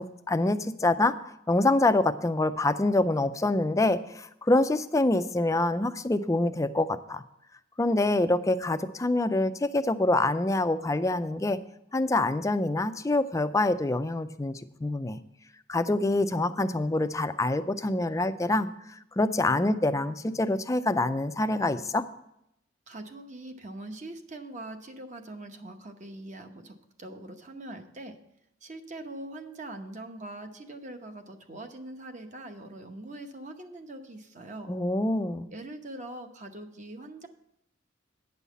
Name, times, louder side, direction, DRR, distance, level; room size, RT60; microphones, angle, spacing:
voice 1, 0.0-7.2 7.8-11.6 11.9-15.2 15.7-22.0 34.7-35.5, left 2 dB, 15° left, 10 dB, 0.4 m, -26 dB
voice 2, 22.9-28.2 28.6-34.7 35.5-37.3, right 1 dB, 40° right, 6 dB, 0.9 m, -42 dB
9.2 x 5.6 x 8.2 m, 0.79 s
head